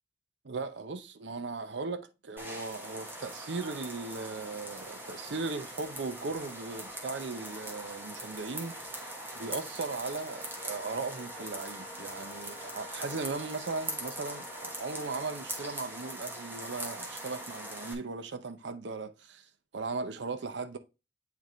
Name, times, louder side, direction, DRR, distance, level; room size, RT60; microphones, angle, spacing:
voice 1, 0.4-20.8, right 3 dB, 65° right, 0.6 m, -38 dB
sound 1, 2.4-17.9, right 1 dB, 10° right, 1.2 m, -42 dB
Wind instrument woodwind instrument, 10.0-14.9, left 4 dB, 30° left, 0.6 m, -51 dB
8.9 x 3.5 x 3.0 m
head